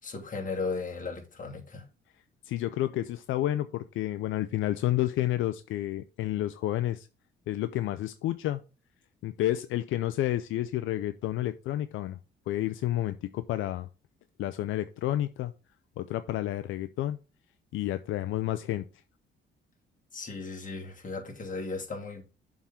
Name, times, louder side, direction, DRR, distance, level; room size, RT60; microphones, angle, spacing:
voice 1, 0.0-1.9 20.1-22.2, left 4 dB, 40° left, 2.9 m, -36 dB
voice 2, 2.4-7.1 7.5-8.6 9.2-12.2 12.5-13.9 14.4-15.5 16.0-17.2 17.7-18.8, left 14 dB, 80° left, 0.5 m, -30 dB
7.1 x 3.7 x 5.8 m
cardioid pair, 90°, 20 cm